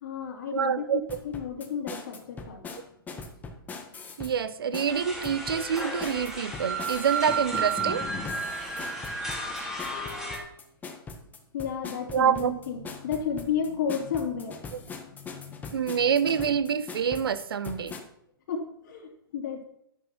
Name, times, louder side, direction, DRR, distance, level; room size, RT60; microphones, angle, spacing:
voice 1, 0.0-2.8 8.5-8.7 11.5-16.1 18.5-19.6, left 7 dB, 55° left, 2 dB, 2.7 m, -33 dB
voice 2, 0.5-1.0 4.2-8.0 12.1-12.6 15.7-17.9, right 7 dB, 75° right, 14 dB, 1.1 m, -26 dB
sound 1, 1.1-4.4 4.7-18.0, left 4 dB, 15° left, 1.6 m, -41 dB
sound 2, 4.9-10.4, right 3 dB, 5° right, 3.8 m, -33 dB
12.0 x 10.5 x 4.5 m, 0.73 s
hypercardioid pair, 130°, 12 cm